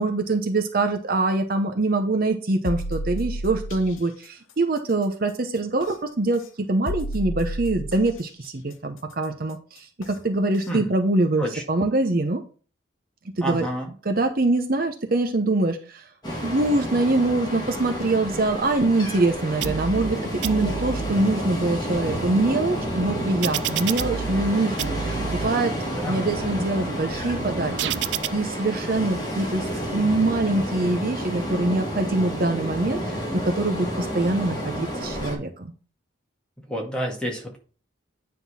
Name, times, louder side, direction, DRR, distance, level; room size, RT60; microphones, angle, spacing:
voice 1, 0.0-12.4 13.4-13.7 14.0-16.1 16.4-25.7 26.1-27.7 28.3-35.7, right 2 dB, 50° right, 5 dB, 0.8 m, -24 dB
sound 1, 2.6-3.9 5.8-5.9 6.9-8.2 10.0-10.1 10.6-10.7, equal, 85° left, 0.9 m, -31 dB
voice 2, 13.4-13.9 25.8-26.2 36.7-37.6, equal, 5° left, -1 dB, 1.9 m, -29 dB
Ocean, 16.2-35.4, equal, 20° left, 2.5 m, -30 dB
sound 2, 19.6-20.1 20.4-21.1 21.7-24.5 24.8-25.5 26.1-28.3, right 8 dB, 65° right, 0.4 m, -31 dB
9.7 x 3.8 x 5.7 m, 0.39 s
head